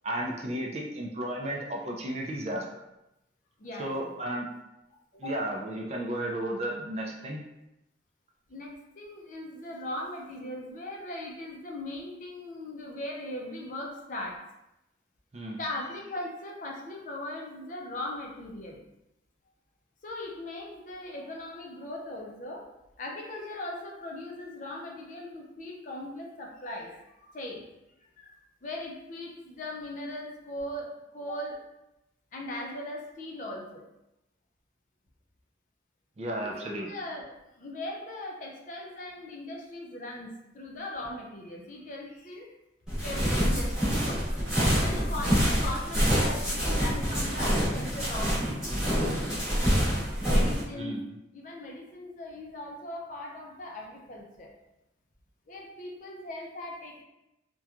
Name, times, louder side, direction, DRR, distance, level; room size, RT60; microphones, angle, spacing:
voice 1, 0.0-2.8 3.8-4.5 5.2-7.4 15.3-15.6 36.2-36.9 50.7-51.2, right 1 dB, 35° right, 0 dB, 0.3 m, -33 dB
voice 2, 3.6-4.2 5.2-5.4 8.5-14.4 15.6-18.8 20.0-22.6 23.0-27.7 28.0-28.4 28.6-31.6 32.3-33.9 36.4-42.5 43.0-44.4 44.7-48.9 50.3-51.0 51.3-54.5 55.5-57.0, left 1 dB, 45° left, -1 dB, 0.4 m, -39 dB
sound 1, 42.9-50.6, equal, 5° right, 1.0 m, -26 dB
2.9 x 2.2 x 2.4 m, 0.90 s
head